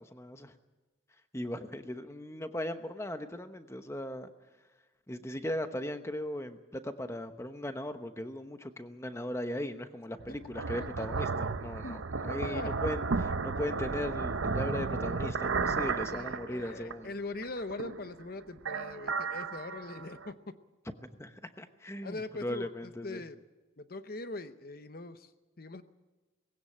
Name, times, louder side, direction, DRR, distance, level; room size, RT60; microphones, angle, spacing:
voice 1, 0.1-0.5 1.3-4.3 5.1-17.1 20.9-23.2, left 1 dB, 15° left, 8 dB, 1.0 m, -38 dB
sound 1, 10.2-17.1 17.4-18.2 18.6-20.3, right 4 dB, 75° right, 0.7 m, -34 dB
voice 2, 10.8-11.2 11.8-12.0 12.4-12.7 16.1-20.5 22.0-22.7 23.0-23.4 23.8-25.3 25.6-25.8, left 2 dB, 45° left, 11 dB, 0.8 m, -41 dB
19.5 x 16.5 x 8.8 m, 1.2 s
head